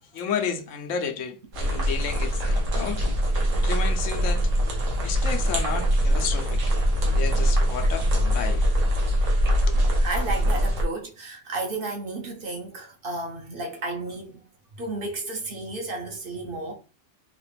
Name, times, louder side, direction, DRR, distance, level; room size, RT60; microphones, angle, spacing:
voice 1, 0.0-3.1 3.6-4.5 5.0-6.7 7.1-8.7 9.5-9.8, left 6 dB, 80° left, 1.0 m, -32 dB
sound 1, 1.5-10.8, equal, 90° right, 1.3 m, -23 dB
voice 2, 10.0-14.4 14.8-16.7, right 2 dB, 50° right, 0.9 m, -32 dB
3.9 x 2.4 x 3.2 m
omnidirectional pair, 1.3 m